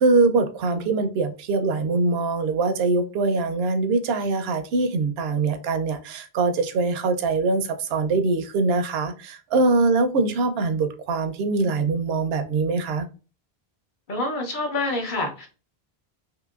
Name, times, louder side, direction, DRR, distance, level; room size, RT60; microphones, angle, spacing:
voice 1, 0.0-13.1, right 3 dB, 75° right, 0.8 m, -23 dB
voice 2, 14.1-15.5, left 2 dB, 55° left, 1.0 m, -27 dB
2.9 x 2.8 x 2.3 m
omnidirectional pair, 1.1 m